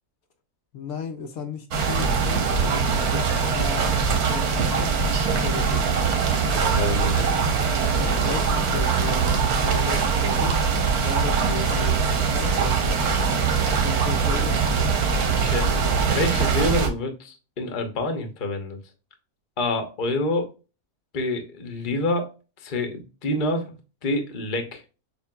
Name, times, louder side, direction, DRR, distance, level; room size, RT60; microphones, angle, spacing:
voice 1, 0.7-2.5 3.1-3.9 4.2-5.0 5.3-5.9 8.1-10.6 10.9-13.0 13.5-15.1, left 4 dB, 75° left, 1.1 m, -35 dB
sound 1, 1.7-16.9, right 5 dB, 85° right, 1.4 m, -22 dB
voice 2, 6.5-7.3 15.4-15.7 16.1-18.8 19.6-20.5 21.1-22.3 22.6-23.7 24.0-24.8, left 2 dB, 40° left, 0.9 m, -27 dB
6.9 x 2.3 x 2.2 m
omnidirectional pair, 1.6 m